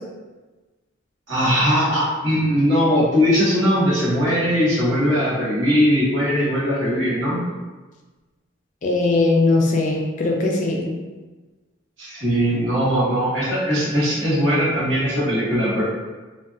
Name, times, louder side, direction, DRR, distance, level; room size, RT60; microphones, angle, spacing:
voice 1, 1.3-7.4 12.0-15.8, equal, 60° right, -11 dB, 1.1 m, -20 dB
voice 2, 8.8-10.9, left 2 dB, 35° left, 0 dB, 0.3 m, -19 dB
2.6 x 2.2 x 2.3 m, 1.3 s
head